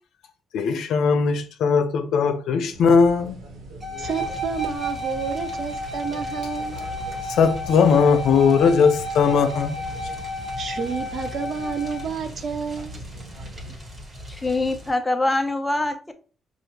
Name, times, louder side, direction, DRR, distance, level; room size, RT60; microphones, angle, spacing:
voice 1, 0.5-3.4 7.3-9.9, left 5 dB, 75° left, 0.5 m, -19 dB
sound 1, 2.7-13.8, right 2 dB, 80° right, 1.3 m, -42 dB
sound 2, 3.8-12.1, equal, 15° right, 1.1 m, -32 dB
sound 3, 4.0-14.9, equal, 35° right, 1.4 m, -41 dB
voice 2, 4.0-6.9 10.6-12.9, right 6 dB, 50° right, 0.6 m, -30 dB
voice 3, 14.3-16.1, left 2 dB, 10° left, 0.7 m, -24 dB
4.9 x 2.5 x 2.9 m
cardioid pair, 90°, 0 cm